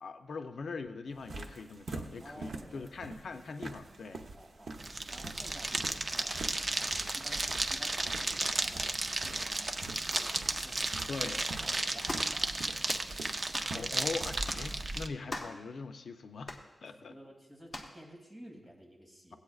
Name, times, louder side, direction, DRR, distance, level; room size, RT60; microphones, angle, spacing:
voice 1, 0.0-4.2 11.1-11.4 13.7-16.6 16.8-17.1, left 4 dB, 75° left, 7 dB, 0.5 m, -41 dB
sound 1, 1.1-14.5, right 3 dB, 70° right, 0.8 m, -46 dB
voice 2, 2.2-3.0 3.3-3.4 4.3-4.8 5.1-11.3 11.6-12.6 14.6-14.9 16.9-19.4, equal, 15° right, -2 dB, 1.9 m, -53 dB
sound 2, 4.7-15.1, right 2 dB, 30° right, 0.5 m, -34 dB
sound 3, 12.1-12.3 12.9-13.1 13.5-13.7 14.4-14.7 15.3-15.6 16.4-16.6 17.7-17.9, left 2 dB, 30° left, 0.9 m, -40 dB
17.5 x 8.4 x 2.4 m, 1.0 s
wide cardioid pair, 170°, 0 cm